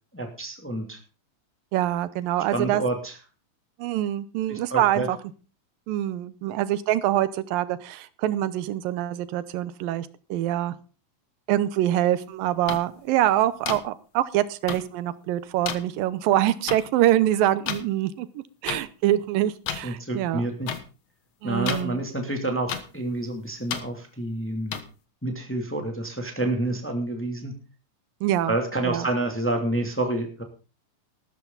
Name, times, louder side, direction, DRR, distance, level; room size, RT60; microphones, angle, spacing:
voice 1, 0.1-1.0 2.5-3.2 4.5-5.1 19.8-20.8 21.4-24.8 25.2-27.5 28.5-30.4, right 2 dB, 5° left, 4 dB, 2.0 m, -28 dB
voice 2, 1.7-2.8 3.8-5.2 5.9-10.8 11.5-20.5 21.4-22.0 28.2-28.5 28.8-29.1, right 13 dB, 85° right, 15 dB, 2.6 m, -25 dB
sound 1, 12.7-12.8 13.7-13.8 14.7-14.8 15.7-15.8 16.7-16.8 17.7-17.8 18.7-18.8 19.7-19.8 20.7-20.8 21.7-21.8 22.7-22.8 23.7-23.8 24.7-24.8, left 9 dB, 60° left, 2.0 m, -29 dB
13.5 x 13.0 x 4.0 m, 0.33 s
omnidirectional pair, 3.9 m